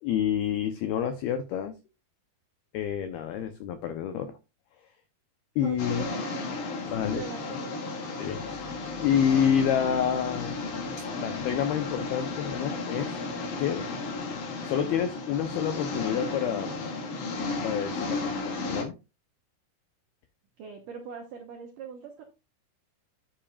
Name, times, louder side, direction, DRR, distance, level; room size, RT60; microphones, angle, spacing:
voice 1, 0.0-1.7 2.7-4.3 5.6-6.1 6.9-7.2 8.2-10.6 11.2-13.1 13.6-13.9 14.6-16.8 17.6-19.0, left 9 dB, 85° left, 8 dB, 2.2 m, -28 dB
voice 2, 5.6-6.4 6.8-7.8 20.6-22.2, right 7 dB, 80° right, 3 dB, 1.9 m, -41 dB
sound 1, 5.8-18.8, left 3 dB, 55° left, 2.5 m, -34 dB
10.0 x 8.7 x 2.4 m, 0.28 s
omnidirectional pair, 5.5 m